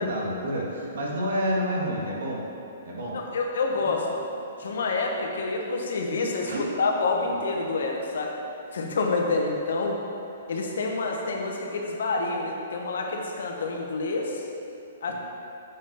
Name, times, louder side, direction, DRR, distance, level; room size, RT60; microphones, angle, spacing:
voice 1, 0.0-2.4 2.8-3.2 3.8-3.9 4.6-4.7 6.4-6.7 15.1-15.2, equal, 75° right, -3 dB, 2.0 m, -29 dB
voice 2, 3.1-4.1 4.6-8.4 8.7-10.0 10.5-14.4 15.0-15.1, left 3 dB, 75° left, 1 dB, 1.2 m, -28 dB
7.1 x 5.7 x 5.6 m, 2.7 s
hypercardioid pair, 155°, 0 cm